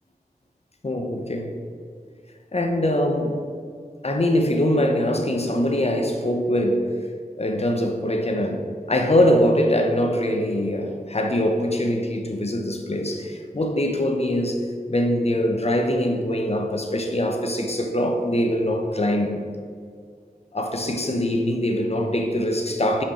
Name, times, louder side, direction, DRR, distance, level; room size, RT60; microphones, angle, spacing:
voice 1, 0.8-1.5 2.5-3.4 4.0-6.9 7.4-8.6 8.9-14.6 14.9-19.4 20.5-23.0, left 1 dB, 40° left, 0.8 m, -23 dB
5.5 x 5.1 x 4.3 m
wide cardioid pair, 45°, 16 cm